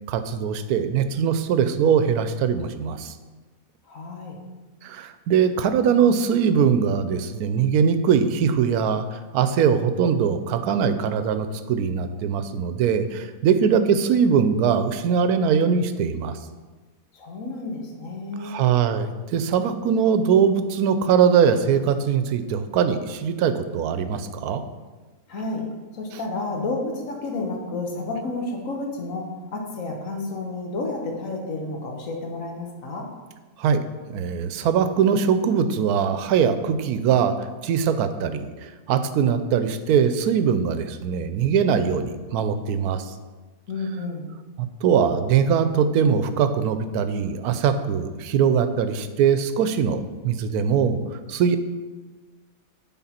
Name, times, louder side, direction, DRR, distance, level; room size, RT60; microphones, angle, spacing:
voice 1, 0.1-3.1 4.8-16.4 18.4-24.6 33.6-33.8 34.1-43.1 44.6-51.0 51.3-51.6, right 7 dB, 90° right, 10 dB, 1.1 m, -21 dB
voice 2, 3.9-4.4 17.1-18.6 25.3-25.6 25.9-29.3 29.5-33.1 43.7-44.3, left 2 dB, 65° left, 1 dB, 1.5 m, -31 dB
9.8 x 3.9 x 4.3 m, 1.3 s
omnidirectional pair, 1.5 m